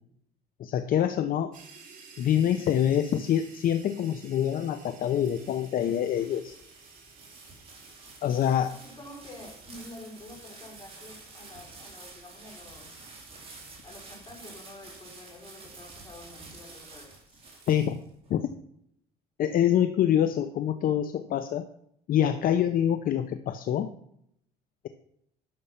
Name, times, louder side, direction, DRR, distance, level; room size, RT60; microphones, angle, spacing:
voice 1, 0.6-1.5 2.2-6.6 8.2-8.7 17.7-18.0 18.3-18.5 19.4-21.7 22.1-23.9, left 10 dB, 55° left, 10 dB, 0.7 m, -25 dB
sound 1, 1.5-15.2, right 5 dB, 50° right, 3.3 m, -55 dB
sound 2, 4.7-18.3, right 3 dB, 35° right, 4.3 m, -49 dB
voice 2, 8.7-13.1 13.8-17.4, left 1 dB, 30° left, 1 dB, 4.1 m, -48 dB
12.0 x 6.7 x 5.8 m, 0.70 s
cardioid pair, 110°, 17 cm